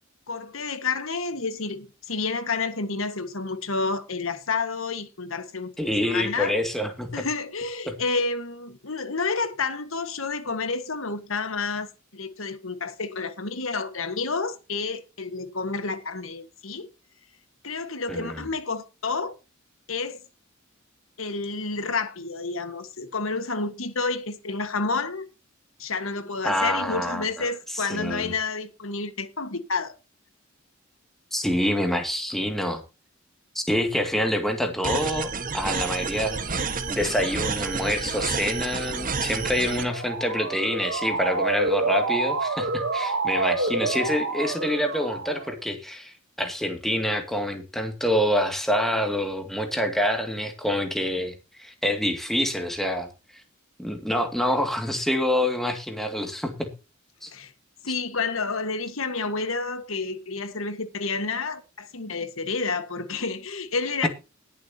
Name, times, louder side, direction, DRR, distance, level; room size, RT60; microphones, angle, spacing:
voice 1, 0.3-6.5 7.1-16.9 17.6-19.3 19.9-20.3 21.2-25.3 25.8-29.9 57.3-57.5 57.8-64.1, left 4 dB, 75° left, 1.6 m, -30 dB
voice 2, 5.8-7.3 7.9-8.0 18.1-18.5 26.4-27.5 27.7-28.3 31.3-32.8 33.5-53.1 53.8-56.7 57.2-57.3 64.0-64.1, equal, ahead, 2.2 m, -26 dB
sound 1, 34.8-39.8, right 5 dB, 40° right, 1.5 m, -30 dB
Motor vehicle (road) / Siren, 39.7-45.6, right 3 dB, 80° right, 1.8 m, -28 dB
20.0 x 7.5 x 2.9 m
head